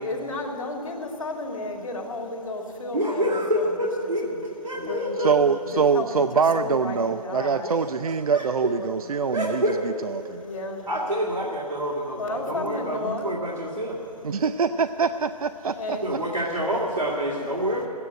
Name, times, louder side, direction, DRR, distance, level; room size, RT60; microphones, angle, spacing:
voice 1, 0.0-3.7 4.2-4.4 4.7-5.3 5.7-7.8 8.7-9.1 10.2-10.9 12.2-13.3 14.3-14.4 15.6-16.2, left 2 dB, 55° left, 1 dB, 2.3 m, -33 dB
voice 2, 2.9-4.3 4.6-5.3 7.6-7.8 8.3-8.4 9.3-9.8 10.9-14.0 16.0-17.9, equal, 90° right, -5 dB, 2.4 m, -27 dB
voice 3, 5.2-10.4 14.2-16.0, right 5 dB, 65° right, 11 dB, 0.4 m, -24 dB
13.5 x 9.6 x 8.9 m, 3.0 s
figure-of-eight pair, 140°, 20 cm